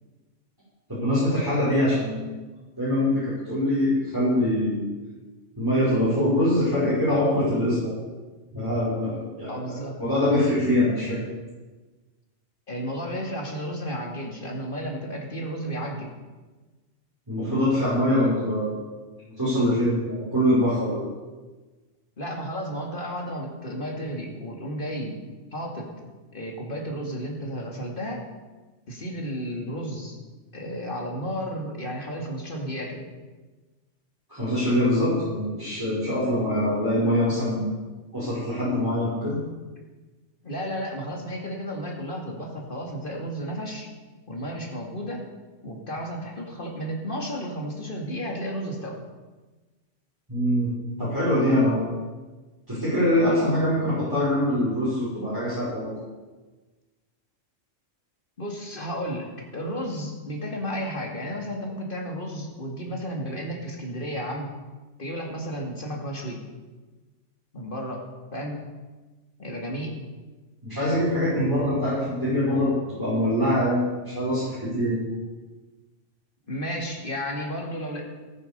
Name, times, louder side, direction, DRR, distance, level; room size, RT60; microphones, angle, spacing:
voice 1, 0.9-2.3 2.8-4.8 5.6-7.9 8.5-11.2 17.3-18.9 19.2-21.0 34.3-37.7 38.1-39.4 50.3-50.7 51.0-51.9 52.7-55.9 70.6-75.0, left 1 dB, 15° right, -11 dB, 5.4 m, -24 dB
voice 2, 9.5-10.0 12.7-16.1 22.2-25.2 25.5-26.0 26.3-28.3 28.9-30.2 30.5-33.0 40.4-43.9 44.3-45.2 45.6-49.0 58.4-64.5 65.0-66.4 67.5-68.6 69.4-69.9 76.5-78.0, equal, 45° left, 0 dB, 2.5 m, -33 dB
14.0 x 9.5 x 6.8 m, 1.3 s
omnidirectional pair, 1.3 m